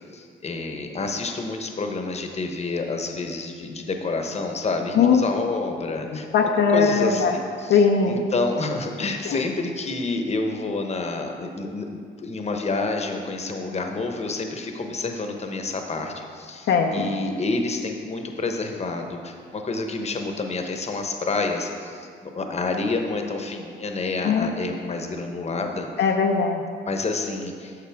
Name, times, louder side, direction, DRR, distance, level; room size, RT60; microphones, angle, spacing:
voice 1, 0.1-6.3 6.7-11.9 12.2-25.9 26.8-27.8, left 3 dB, 35° left, 4 dB, 0.9 m, -28 dB
voice 2, 4.9-5.2 6.1-7.3 7.7-8.2 9.3-9.4 16.7-17.1 24.2-24.5 26.0-26.7, left 5 dB, 65° left, 2 dB, 0.6 m, -20 dB
9.7 x 6.6 x 3.5 m, 2.2 s
cardioid pair, 90°, 20 cm